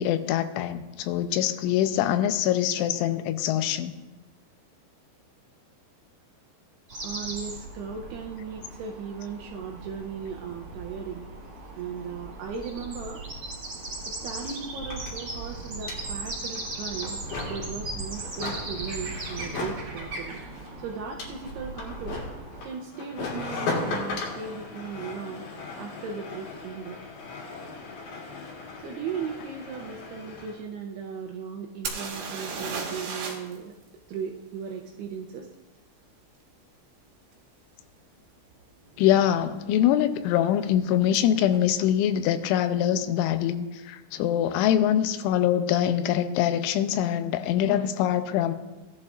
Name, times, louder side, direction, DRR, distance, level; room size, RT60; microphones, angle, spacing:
voice 1, 0.0-3.9 39.0-48.5, left 10 dB, 85° left, 11 dB, 3.0 m, -24 dB
sound 1, 6.9-22.7, right 2 dB, 35° right, 3.9 m, -38 dB
voice 2, 7.0-11.3 11.8-13.2 14.0-17.2 17.4-20.4 20.8-22.2 22.6-27.0 28.8-33.7 34.1-35.5, right 6 dB, 85° right, 0 dB, 2.4 m, -37 dB
sound 2, 13.7-13.8 14.0-30.6, left 3 dB, 60° left, 3.1 m, -38 dB
sound 3, 31.9-33.6 33.8-33.9 37.3-37.4 38.1-38.3 38.5-39.1 41.2-41.3 41.5-41.6, right 4 dB, 70° right, 2.7 m, -34 dB
16.5 x 11.0 x 2.4 m, 1.1 s
omnidirectional pair, 5.3 m